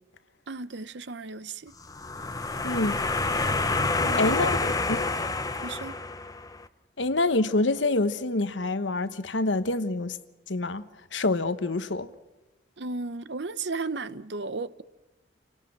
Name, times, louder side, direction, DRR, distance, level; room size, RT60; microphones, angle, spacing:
voice 1, 0.5-1.7 4.0-4.3 5.6-5.9 12.8-14.8, right 3 dB, 70° right, 0.8 m, -34 dB
sound 1, 1.8-6.6, left 3 dB, 20° left, 0.9 m, -28 dB
voice 2, 2.6-3.0 4.1-5.1 7.0-10.2 10.5-12.1, left 2 dB, 85° left, 1.1 m, -27 dB
29.0 x 18.0 x 6.0 m
head